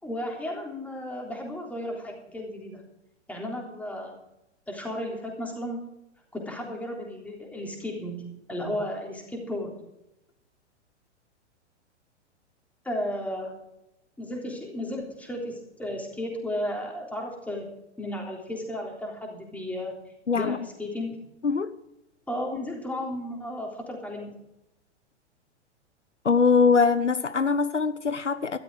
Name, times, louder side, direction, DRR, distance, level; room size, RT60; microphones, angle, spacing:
voice 1, 0.0-2.8 3.3-4.2 4.7-5.9 6.3-9.7 12.8-13.5 14.2-17.7 18.0-19.9 20.3-21.2 22.3-24.3, left 1 dB, 5° left, 3.5 m, -34 dB
voice 2, 20.3-20.6 21.4-21.7 26.2-28.6, left 5 dB, 85° left, 0.9 m, -22 dB
13.0 x 12.5 x 5.0 m
figure-of-eight pair, 105°, 35 cm